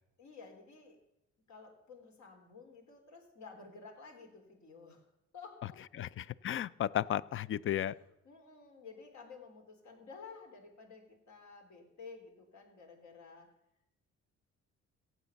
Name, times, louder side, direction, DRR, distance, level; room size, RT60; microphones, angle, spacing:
voice 1, 0.2-1.0 1.5-5.1 5.3-6.0 7.8-13.5, left 4 dB, 70° left, 3 dB, 3.5 m, -53 dB
voice 2, 5.9-8.0, left 11 dB, 45° left, 21 dB, 0.4 m, -34 dB
15.5 x 8.2 x 7.0 m, 0.84 s
cardioid pair, 90°, 30 cm